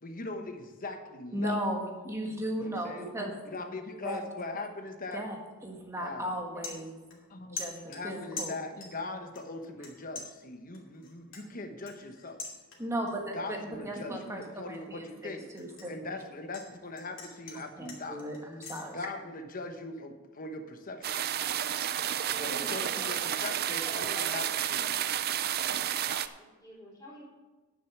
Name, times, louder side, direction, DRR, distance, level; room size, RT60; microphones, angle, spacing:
voice 1, 0.0-1.6 2.6-5.2 6.0-6.8 7.1-12.4 13.3-18.2 18.8-21.2 22.3-25.1, left 2 dB, 40° left, 6 dB, 1.0 m, -41 dB
voice 2, 1.3-3.4 4.0-4.2 5.1-5.4 5.6-7.0 7.5-8.5 12.8-16.1 17.8-19.0, right 1 dB, 15° right, 1 dB, 1.5 m, -36 dB
sound 1, 5.7-5.9 6.3-7.3 7.6-9.1 9.4-9.9 10.2-13.1 13.5-13.8 14.2-16.7 17.0-18.8, left 4 dB, 60° left, 2.6 m, -44 dB
sound 2, 21.0-26.3, right 10 dB, 45° right, 0.4 m, -31 dB
voice 3, 22.1-24.6 26.4-27.2, equal, 15° left, -10 dB, 3.5 m, -47 dB
10.5 x 6.5 x 6.1 m, 1.2 s
head